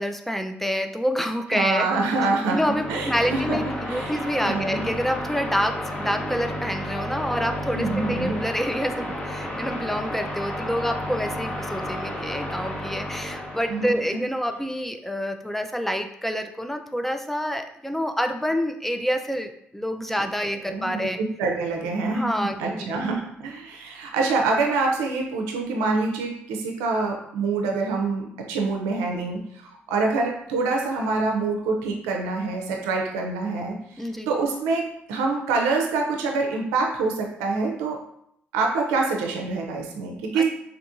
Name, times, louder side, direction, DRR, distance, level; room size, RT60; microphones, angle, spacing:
voice 1, 0.0-1.9 2.5-21.2 22.1-22.9 34.0-34.3 40.3-40.4, equal, 5° left, 6 dB, 0.4 m, -27 dB
voice 2, 1.5-3.6 3.9-4.8 7.7-8.4 13.7-13.9 20.7-38.0 38.5-40.4, right 3 dB, 90° right, 1 dB, 0.4 m, -26 dB
sound 1, 2.4-14.0, equal, 25° left, 1.0 m, -32 dB
3.4 x 2.8 x 2.5 m, 0.73 s
supercardioid pair, 55°, 5 cm